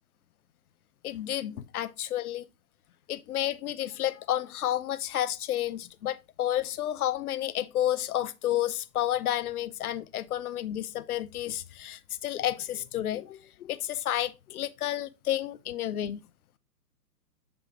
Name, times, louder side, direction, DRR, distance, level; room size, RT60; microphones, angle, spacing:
voice 1, 1.0-2.5 3.1-16.2, left 12 dB, 65° left, 0.7 m, -31 dB
7.4 x 5.1 x 3.0 m
hypercardioid pair, 120°, 48 cm